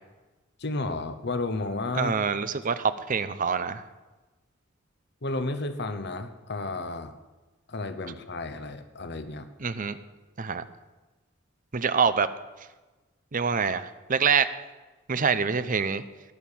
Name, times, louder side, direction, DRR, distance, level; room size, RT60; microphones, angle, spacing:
voice 1, 0.6-2.2 5.2-7.1 7.7-9.5, left 2 dB, 55° left, 9 dB, 1.0 m, -32 dB
voice 2, 1.9-3.8 9.6-10.0 10.4-10.6 11.7-12.3 13.3-14.5 15.1-16.0, right 6 dB, 40° right, 13 dB, 0.7 m, -25 dB
18.0 x 6.7 x 7.2 m, 1.2 s
head